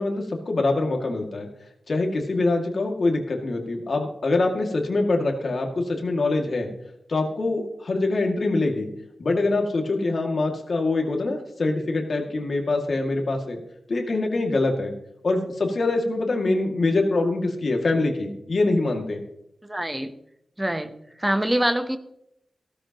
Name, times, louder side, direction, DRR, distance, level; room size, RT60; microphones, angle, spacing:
voice 1, 0.0-1.5 1.9-6.7 7.1-8.9 9.2-13.6 13.9-14.9 15.2-19.2, left 2 dB, 50° left, 2 dB, 2.2 m, -24 dB
voice 2, 19.6-20.1 20.6-22.0, right 1 dB, 10° right, 9 dB, 0.9 m, -25 dB
15.5 x 13.0 x 3.0 m, 0.78 s
wide cardioid pair, 135°, 0 cm